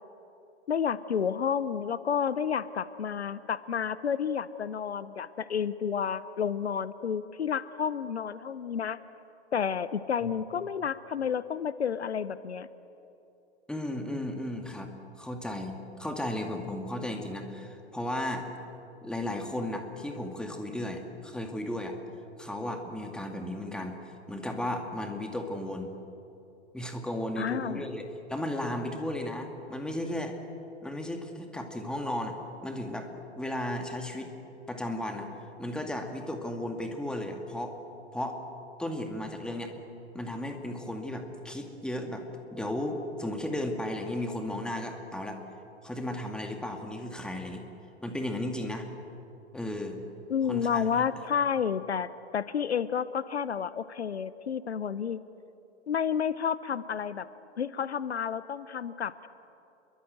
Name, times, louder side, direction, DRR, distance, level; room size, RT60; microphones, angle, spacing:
voice 1, 0.7-9.0 9.5-12.7 27.4-27.9 50.3-55.2 55.9-57.3 57.6-59.3, left 7 dB, 70° left, 16 dB, 0.9 m, -30 dB
voice 2, 13.7-14.9 15.2-18.5 19.0-21.9 22.4-25.9 26.7-28.0 28.3-30.3 30.8-33.1 33.4-34.3 34.7-35.3 35.6-37.8 38.1-38.4 38.8-39.7 40.1-42.3 42.5-45.4 45.8-47.7 48.0-48.9 49.5-50.0 50.5-50.8, left 1 dB, ahead, 4 dB, 2.3 m, -34 dB
28.0 x 23.0 x 8.0 m, 2.8 s
figure-of-eight pair, 105°, 34 cm